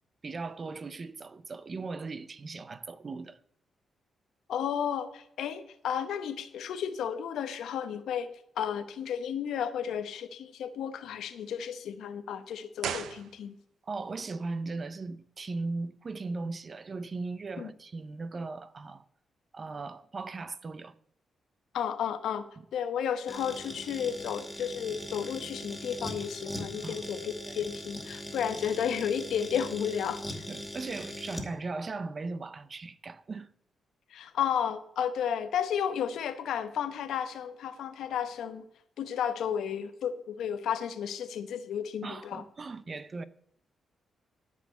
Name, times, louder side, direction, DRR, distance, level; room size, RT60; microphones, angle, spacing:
voice 1, 0.2-3.4 13.8-19.0 19.5-20.9 22.6-22.7 26.8-27.0 27.5-27.6 30.5-33.5 42.0-43.2, right 3 dB, 40° right, 0.7 m, -38 dB
voice 2, 4.5-8.3 8.6-13.5 17.6-17.7 21.7-22.4 22.7-30.4 34.1-38.6 39.0-42.4, left 8 dB, 90° left, 1.0 m, -33 dB
sound 1, 12.8-13.9 14.1-14.2, right 8 dB, 90° right, 0.8 m, -37 dB
sound 2, 23.3-31.5, left 1 dB, 10° left, 2.3 m, -40 dB
13.0 x 5.0 x 8.1 m
cardioid pair, 100°, 0 cm